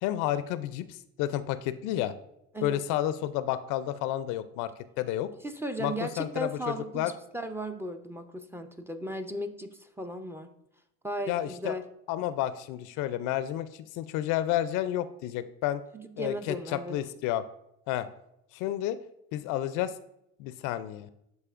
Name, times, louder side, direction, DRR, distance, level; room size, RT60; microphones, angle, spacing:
voice 1, 0.0-2.1 2.6-4.7 5.0-5.3 5.8-7.1 11.3-11.8 12.1-15.8 16.2-17.4 17.9-18.1 18.5-19.0 19.3-19.9 20.4-21.1, left 12 dB, 65° left, 14 dB, 0.5 m, -31 dB
voice 2, 5.4-10.5 11.0-11.8 15.9-17.0, equal, 5° right, 7 dB, 0.5 m, -36 dB
12.0 x 4.1 x 2.5 m, 0.79 s
supercardioid pair, 95°, 33 cm